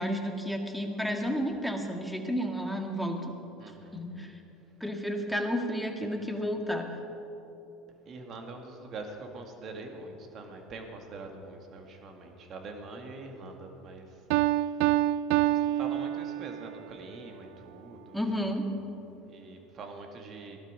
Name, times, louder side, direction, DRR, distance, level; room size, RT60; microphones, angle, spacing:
voice 1, 0.0-3.4 3.9-4.3 4.8-6.9 18.1-18.7, equal, ahead, 3 dB, 1.8 m, -31 dB
voice 2, 3.6-4.0 8.1-14.2 14.5-14.7 15.3-18.5 19.3-20.6, right 3 dB, 50° right, 4 dB, 2.1 m, -44 dB
Piano, 14.3-16.8, right 14 dB, 75° right, 0.3 m, -27 dB
16.5 x 11.5 x 5.1 m, 3.0 s
hypercardioid pair, 85°, 0 cm